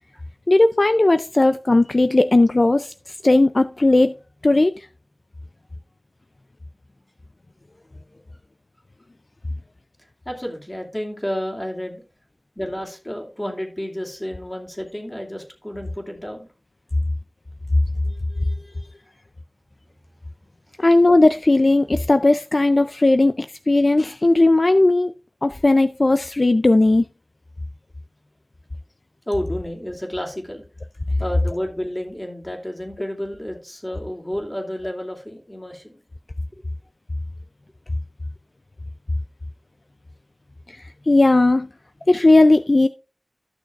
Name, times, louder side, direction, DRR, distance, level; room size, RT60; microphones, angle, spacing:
voice 1, 0.5-2.9 3.2-4.1 4.4-4.7 20.8-25.1 25.4-27.0 41.1-41.7 42.1-42.9, left 2 dB, 60° left, 0.3 m, -16 dB
voice 2, 10.3-12.0 12.6-16.5 18.0-18.9 20.5-20.6 29.3-30.6 31.2-36.0 36.5-36.6, equal, 20° left, 2.6 m, -31 dB
14.0 x 6.4 x 2.4 m
wide cardioid pair, 50°, 0 cm